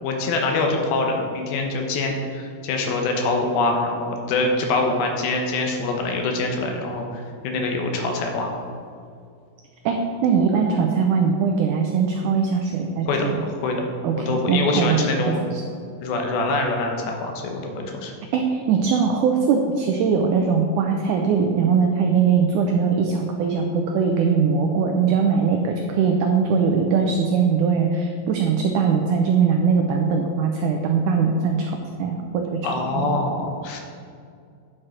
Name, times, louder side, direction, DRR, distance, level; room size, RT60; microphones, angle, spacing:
voice 1, 0.0-8.5 13.0-13.8 14.0-15.4 16.0-18.1 32.6-33.8, left 3 dB, 90° left, 2 dB, 2.9 m, -24 dB
voice 2, 9.9-13.4 14.0-15.6 18.3-32.4 33.0-33.2, right 6 dB, 85° right, 3 dB, 1.7 m, -21 dB
9.9 x 6.4 x 4.4 m, 2.3 s
omnidirectional pair, 4.2 m